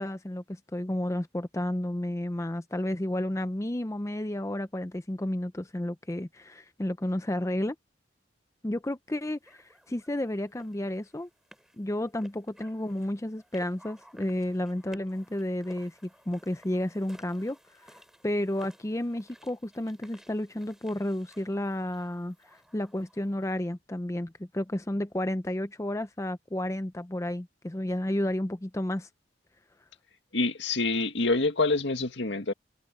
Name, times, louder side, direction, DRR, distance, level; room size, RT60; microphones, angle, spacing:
voice 1, 0.0-7.8 8.6-11.3 11.8-18.0 18.2-29.1, left 1 dB, 15° left, 0.5 m, -32 dB
sound 1, 9.4-23.5, equal, 5° right, 6.0 m, -56 dB
voice 2, 30.3-32.5, left 3 dB, 75° left, 2.0 m, -26 dB
head